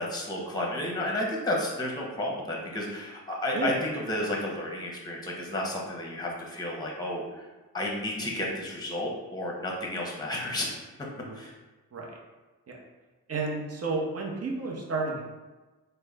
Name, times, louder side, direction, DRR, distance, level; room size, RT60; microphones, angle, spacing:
voice 1, 0.0-7.4 7.7-10.7 11.3-11.5, left 1 dB, 10° left, -1 dB, 0.9 m, -32 dB
voice 2, 13.3-15.2, right 3 dB, 40° right, -1 dB, 0.9 m, -31 dB
3.5 x 2.2 x 3.4 m, 1.2 s
supercardioid pair, 45°, 40 cm